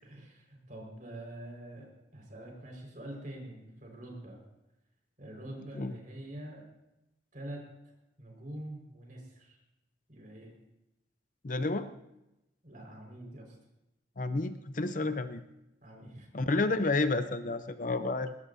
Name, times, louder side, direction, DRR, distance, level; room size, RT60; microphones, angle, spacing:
voice 1, 0.0-1.9 2.1-4.4 5.2-6.7 7.3-7.6 8.2-9.6 10.1-10.5 12.6-13.6 15.0-15.1 15.8-16.3, right 1 dB, 45° right, 0 dB, 4.9 m, -45 dB
voice 2, 11.4-11.9 14.2-15.4 16.3-18.4, left 3 dB, 45° left, 10 dB, 0.6 m, -30 dB
21.0 x 19.5 x 2.7 m, 0.93 s
head